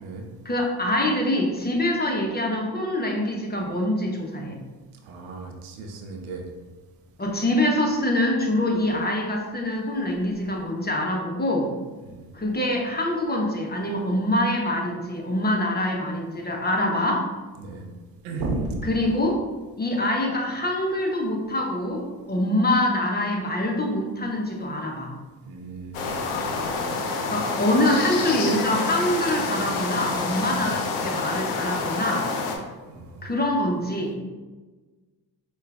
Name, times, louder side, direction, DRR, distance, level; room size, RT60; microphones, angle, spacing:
voice 1, 0.4-4.6 7.2-11.7 12.3-17.3 18.8-19.4 19.8-25.1 27.3-32.3 33.2-34.1, left 1 dB, 20° left, 0 dB, 0.8 m, -25 dB
voice 2, 5.1-6.5 12.1-12.3 17.6-17.8 18.2-18.8 25.5-26.0 26.9-27.2 30.7-30.8 32.9-33.3, right 3 dB, 75° right, 3 dB, 0.7 m, -34 dB
sound 1, 25.9-32.6, left 3 dB, 75° left, 0.6 m, -28 dB
4.7 x 2.3 x 2.3 m, 1.3 s
hypercardioid pair, 45°, 49 cm